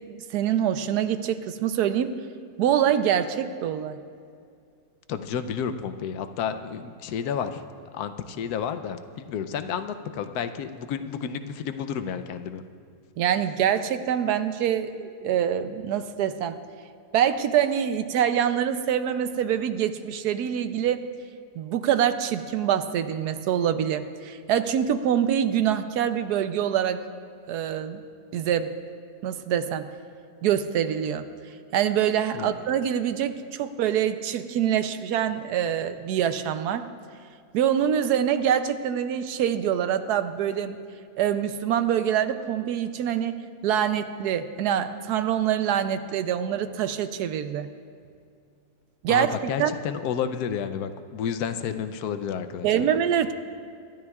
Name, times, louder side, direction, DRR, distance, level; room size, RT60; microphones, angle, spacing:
voice 1, 0.1-2.1 2.6-4.0 13.2-16.6 17.1-21.1 21.6-27.0 27.5-28.0 28.3-28.7 29.2-29.9 30.4-31.3 31.7-36.9 37.5-40.8 41.2-47.7 49.0-49.7 52.6-53.3, right 9 dB, 90° right, 10 dB, 1.2 m, -25 dB
voice 2, 5.1-7.6 7.9-12.6 32.3-32.6 49.1-52.9, left 7 dB, 80° left, 10 dB, 1.2 m, -31 dB
25.0 x 12.5 x 2.4 m, 2.3 s
omnidirectional pair, 1.6 m